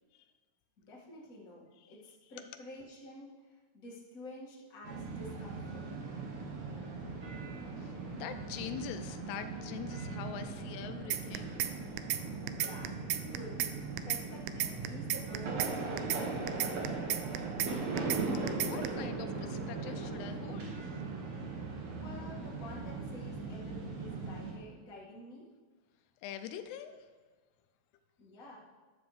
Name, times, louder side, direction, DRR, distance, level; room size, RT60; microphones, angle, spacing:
voice 1, 0.9-5.9 12.5-16.5 21.9-25.5 28.2-28.6, left 1 dB, 30° left, -5 dB, 1.7 m, -50 dB
sound 1, 4.8-24.5, right 3 dB, 50° right, 2.5 m, -39 dB
voice 2, 7.8-11.7 18.6-21.0 26.2-27.1, left 9 dB, 90° left, 9 dB, 2.8 m, -44 dB
sound 2, 11.1-11.7 12.0-12.2 12.5-13.7 14.0-14.2 14.5-15.7 16.0-16.2 16.5-17.7 18.0-18.2 18.5-18.9, right 13 dB, 85° right, 2.5 m, -33 dB
13.5 x 12.0 x 3.3 m, 1.4 s
omnidirectional pair, 4.6 m